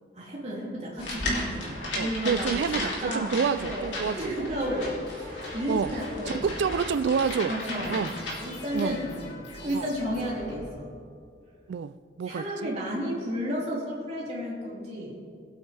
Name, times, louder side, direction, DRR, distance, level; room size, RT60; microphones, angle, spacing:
voice 1, 0.1-2.6 3.0-6.5 7.5-9.2 9.5-10.9 12.2-15.2, equal, 35° right, -5 dB, 2.9 m, -32 dB
sound 1, 1.0-8.9, left 1 dB, 85° left, 2.9 m, -35 dB
voice 2, 2.0-4.3 5.7-5.9 6.3-7.5 7.9-8.1 8.7-9.0 9.7-9.9 11.7-12.7, right 6 dB, 70° right, 14 dB, 0.3 m, -28 dB
sound 2, 3.5-11.3, left 1 dB, 70° left, 2.5 m, -43 dB
21.0 x 8.6 x 3.4 m, 2.3 s
head